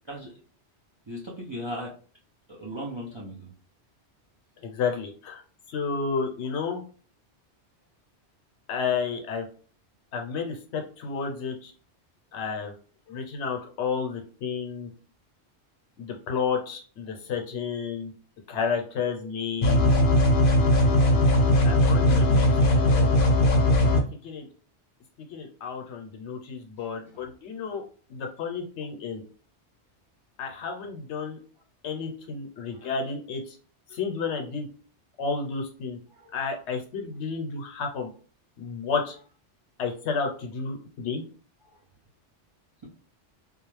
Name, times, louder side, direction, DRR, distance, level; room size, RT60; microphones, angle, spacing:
voice 1, 1.1-1.9 2.6-3.5 22.0-22.6 27.1-27.2 32.7-32.9 36.1-36.3, equal, 35° right, -4 dB, 0.5 m, -37 dB
voice 2, 4.6-5.4 5.7-6.8 8.7-9.5 10.1-11.7 12.3-12.7 13.1-14.9 16.0-18.1 18.5-19.9 21.6-22.3 22.7-23.1 24.2-24.5 25.3-27.8 28.1-29.2 30.4-31.4 31.8-33.6 33.9-34.7 35.2-36.0 36.3-38.1 38.6-39.2 39.8-41.2, left 5 dB, 80° left, 3 dB, 0.9 m, -31 dB
sound 1, 19.6-24.0, left 1 dB, 55° left, 0.7 m, -19 dB
2.4 x 2.1 x 3.1 m, 0.41 s
omnidirectional pair, 1.2 m